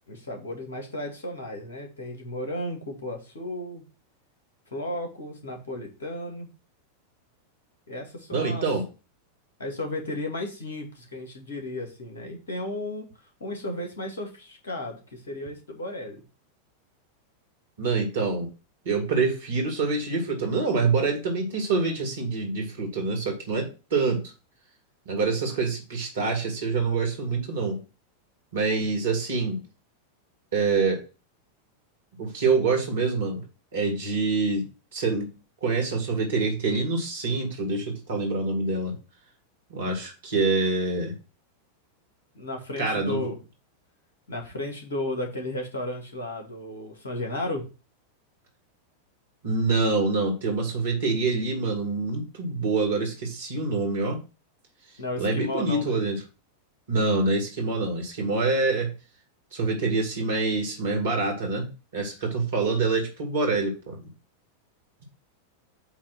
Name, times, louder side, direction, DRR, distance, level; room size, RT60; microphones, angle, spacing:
voice 1, 0.1-3.8 4.7-6.5 7.9-8.6 9.6-13.1 13.4-16.2 42.3-43.4 44.3-47.6 55.0-56.0, left 1 dB, 65° left, 2 dB, 2.1 m, -34 dB
voice 2, 8.3-8.9 17.8-18.5 18.8-24.3 25.1-27.8 28.5-29.6 30.5-31.0 32.2-33.4 33.7-34.7 34.9-35.3 35.6-39.0 39.7-41.1 42.8-43.3 49.4-54.2 55.2-56.2 56.9-58.9 59.5-64.0, right 3 dB, 60° right, 2 dB, 2.4 m, -26 dB
8.3 x 2.9 x 6.0 m, 0.32 s
figure-of-eight pair, 90°, 0 cm